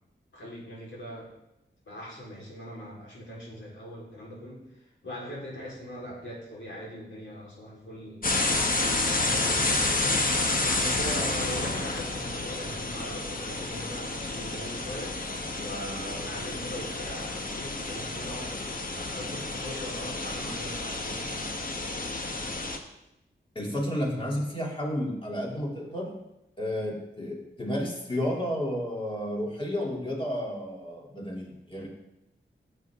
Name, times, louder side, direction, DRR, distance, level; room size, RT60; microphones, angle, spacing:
voice 1, 0.3-1.3 1.9-4.7 5.0-8.4 8.7-15.2 15.6-18.6 18.9-21.4, equal, 75° left, -5 dB, 4.1 m, -40 dB
sound 1, 8.2-22.8, left 2 dB, 45° left, 1.2 m, -30 dB
voice 2, 23.5-26.1 26.6-31.9, equal, 25° left, -2 dB, 3.0 m, -31 dB
15.5 x 7.7 x 3.7 m, 0.88 s
wide cardioid pair, 100°, 20 cm